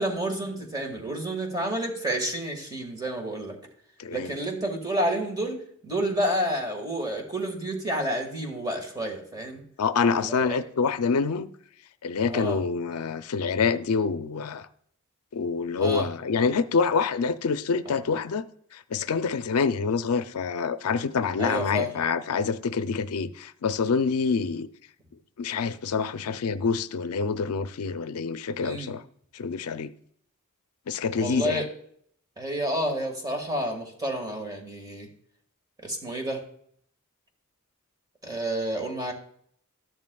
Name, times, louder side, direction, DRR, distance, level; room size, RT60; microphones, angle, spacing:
voice 1, 0.0-3.6 4.1-5.6 5.8-9.6 10.1-10.6 12.3-12.6 15.8-16.1 21.4-21.9 28.6-28.9 31.2-31.6 32.4-35.1 35.8-36.4 38.2-39.1, right 1 dB, 20° right, 1.7 m, -30 dB
voice 2, 4.0-4.3 9.8-11.5 12.0-14.7 15.3-18.5 18.7-24.7 25.4-29.0 29.3-29.9 30.9-31.7, left 5 dB, 80° left, 0.5 m, -26 dB
13.0 x 10.5 x 2.3 m
head